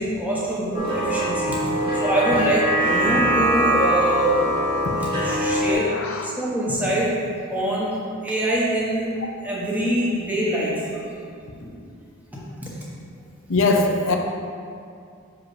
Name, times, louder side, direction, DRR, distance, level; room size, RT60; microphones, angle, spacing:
voice 1, 0.0-1.6 1.9-4.4 4.9-5.9 6.2-7.1 7.5-8.0 8.2-9.1 9.4-11.0 11.6-11.7 12.6-12.8, right 1 dB, 5° right, -6 dB, 1.2 m, -24 dB
sound 1, 0.7-5.7, equal, 25° right, 1.6 m, -22 dB
voice 2, 5.9-6.3 13.5-14.2, left 3 dB, 65° left, 3 dB, 0.7 m, -21 dB
6.4 x 4.8 x 4.9 m, 2.4 s
head